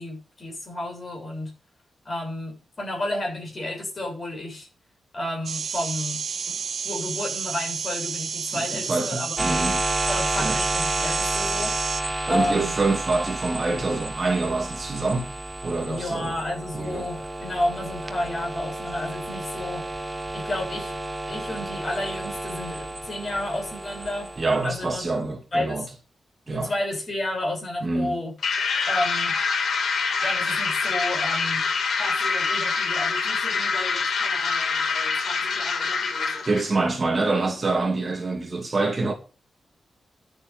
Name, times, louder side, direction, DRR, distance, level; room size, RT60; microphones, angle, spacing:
voice 1, 0.0-1.5 2.1-4.7 5.1-9.6 10.1-11.8 12.3-12.7 15.8-19.9 20.3-20.9 21.3-24.3 24.6-25.1 25.5-25.9 26.5-28.3 28.9-29.4 30.2-31.6 32.0-36.5, left 1 dB, 30° left, 7.1 m, -31 dB
sound 1, 5.5-12.0, right 6 dB, 60° right, 1.7 m, -31 dB
voice 2, 8.5-9.9 10.4-10.6 12.3-15.3 15.6-16.3 16.7-17.1 24.4-25.9 26.5-26.7 27.8-28.2 36.4-39.1, right 3 dB, 30° right, 2.3 m, -26 dB
sound 2, 9.4-25.1, right 2 dB, 15° right, 1.2 m, -31 dB
sound 3, 28.4-36.7, left 5 dB, 85° left, 3.0 m, -25 dB
11.5 x 8.8 x 7.3 m
wide cardioid pair, 170°, 0 cm